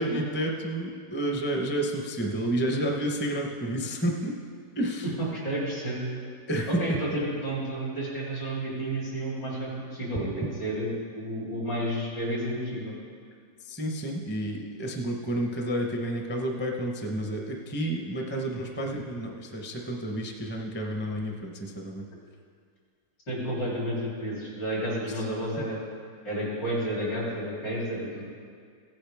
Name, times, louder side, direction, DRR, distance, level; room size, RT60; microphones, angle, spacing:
voice 1, 0.0-4.3 4.8-5.1 6.5-7.0 13.6-22.0 25.1-25.2, right 1 dB, 10° left, 1 dB, 0.5 m, -30 dB
voice 2, 5.2-6.0 6.7-12.9 23.3-25.8 26.2-28.2, right 1 dB, 70° left, -6 dB, 4.3 m, -31 dB
16.0 x 9.0 x 3.6 m, 2.1 s
omnidirectional pair, 1.9 m